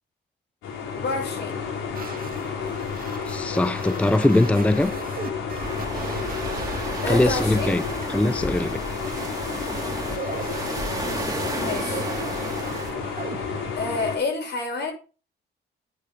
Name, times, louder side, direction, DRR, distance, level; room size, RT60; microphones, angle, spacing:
sound 1, 0.6-14.2, left 6 dB, 90° left, 4.2 m, -31 dB
voice 1, 0.9-1.5 7.0-7.7 11.5-12.1 13.8-14.9, left 3 dB, 60° left, 6.7 m, -28 dB
sound 2, 1.9-13.8, right 6 dB, 45° right, 2.0 m, -39 dB
voice 2, 3.2-4.9 7.1-7.8 8.1-8.8, left 1 dB, 5° left, 0.5 m, -21 dB
sound 3, 5.6-12.9, right 2 dB, 20° right, 3.1 m, -33 dB
9.1 x 8.3 x 4.8 m
cardioid pair, 90°, 20 cm